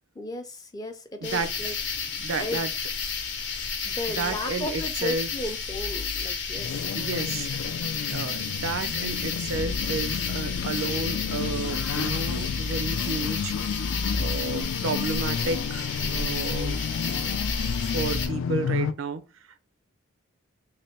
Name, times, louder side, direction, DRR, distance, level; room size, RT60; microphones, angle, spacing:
voice 1, 0.2-1.7 2.4-2.6 3.9-6.8, left 2 dB, 20° left, 0.4 m, -35 dB
sound 1, 1.2-18.3, left 5 dB, 65° left, 0.7 m, -31 dB
voice 2, 1.2-1.7 2.2-2.7 4.1-5.3 6.9-7.5 8.1-13.6 14.2-16.8 17.8-19.2, right 4 dB, 90° right, 0.5 m, -32 dB
sound 2, 6.6-18.9, left 7 dB, 85° left, 0.3 m, -32 dB
3.3 x 2.2 x 4.0 m
head